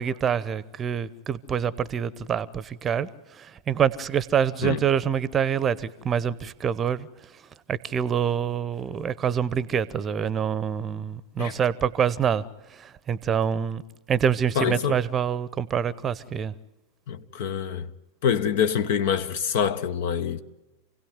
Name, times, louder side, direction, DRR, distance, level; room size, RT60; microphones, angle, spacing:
voice 1, 0.0-7.1 7.7-12.4 12.7-13.8 14.1-16.5, right 8 dB, 25° right, 0.9 m, -26 dB
voice 2, 14.5-15.0 17.1-17.9 18.2-20.4, left 8 dB, 50° left, 1.1 m, -25 dB
28.0 x 17.5 x 9.4 m
figure-of-eight pair, 90°, 0 cm